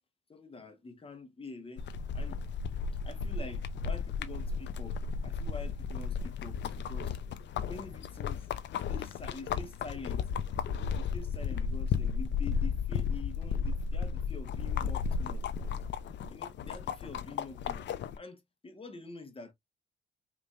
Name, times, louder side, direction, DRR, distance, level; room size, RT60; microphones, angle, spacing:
voice 1, 0.3-1.8 2.1-2.4 3.0-7.2 7.7-8.5 8.7-10.2 11.0-15.4 16.3-17.8 18.1-19.5, left 3 dB, 30° left, 1.3 m, -46 dB
sound 1, 1.8-18.2, left 6 dB, 65° left, 0.6 m, -34 dB
5.2 x 3.0 x 2.5 m
cardioid pair, 90°, 20 cm